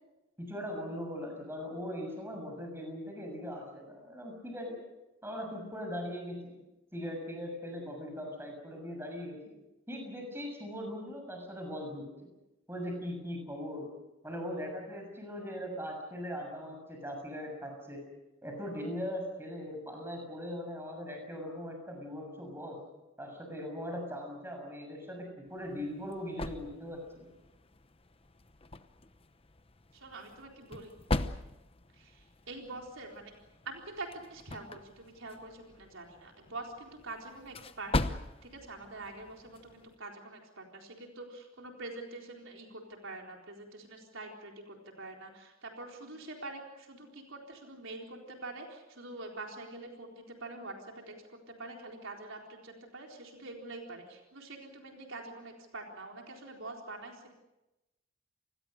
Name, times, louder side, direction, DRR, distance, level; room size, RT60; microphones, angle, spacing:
voice 1, 0.4-4.8 5.2-6.5 6.9-9.4 9.9-12.1 12.7-13.9 14.2-18.0 18.4-22.8 23.2-27.2, equal, 10° right, 3 dB, 6.8 m, -40 dB
sound 1, 25.5-40.0, left 2 dB, 25° left, 0.9 m, -40 dB
voice 2, 29.9-30.9 31.9-33.3 33.6-57.3, right 2 dB, 70° right, 1 dB, 4.0 m, -45 dB
28.5 x 20.5 x 6.6 m, 1.0 s
head